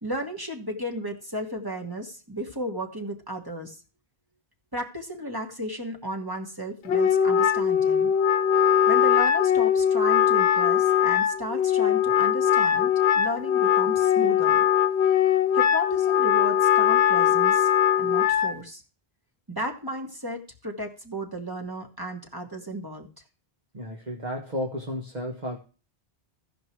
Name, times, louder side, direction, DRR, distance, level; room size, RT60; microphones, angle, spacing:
voice 1, 0.0-3.8 4.7-8.1 8.9-14.6 15.5-17.7 18.0-18.8 19.5-23.1, right 1 dB, 20° right, 2 dB, 1.8 m, -34 dB
Wind instrument woodwind instrument, 6.9-18.5, left 9 dB, 85° left, 1.1 m, -21 dB
voice 2, 23.7-25.6, equal, 45° right, 0 dB, 1.5 m, -33 dB
15.5 x 5.3 x 4.6 m, 0.35 s
omnidirectional pair, 1.1 m